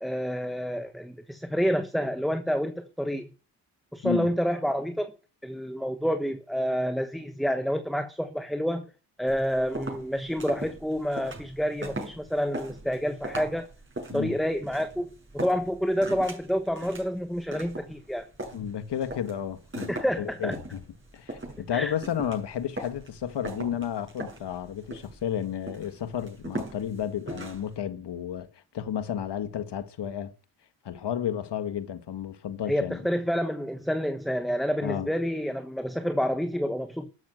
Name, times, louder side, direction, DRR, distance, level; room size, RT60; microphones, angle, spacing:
voice 1, 0.0-3.3 3.9-5.2 5.4-8.9 9.2-13.7 14.1-18.3 19.9-20.6 21.7-21.9 32.7-37.1, equal, ahead, 1.2 m, -28 dB
sound 1, 9.3-27.8, right 1 dB, 25° right, 6.8 m, -40 dB
voice 2, 18.5-20.8 21.1-28.5 28.7-30.3 30.8-33.0 34.8-35.1, left 9 dB, 65° left, 1.8 m, -32 dB
12.5 x 7.3 x 7.9 m
supercardioid pair, 60°, 44 cm